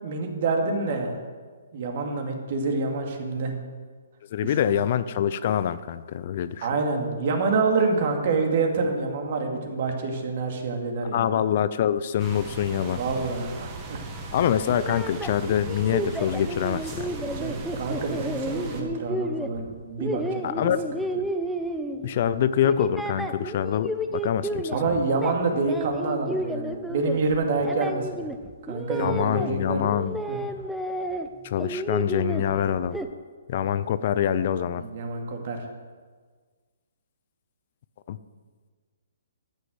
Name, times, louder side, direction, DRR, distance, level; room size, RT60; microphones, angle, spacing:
voice 1, 0.0-1.2 1.7-3.5 4.4-4.5 6.6-11.4 12.8-14.0 17.3-20.7 24.7-28.3 28.7-29.9 30.3-30.4 34.8-35.7, right 3 dB, 50° right, 3 dB, 2.4 m, -27 dB
voice 2, 4.3-6.7 11.1-13.0 14.3-17.3 20.4-20.8 22.0-25.0 29.0-30.2 31.4-33.0 33.5-34.8 38.1-38.2, left 9 dB, 50° left, 14 dB, 0.5 m, -25 dB
sound 1, 12.2-18.8, right 3 dB, 25° right, 1.9 m, -38 dB
sound 2, 14.7-22.2 22.6-24.8 25.1-29.5 29.8-31.3 31.6-33.1, right 1 dB, ahead, 0.8 m, -32 dB
13.0 x 6.4 x 8.0 m, 1.5 s
hypercardioid pair, 140°, 0 cm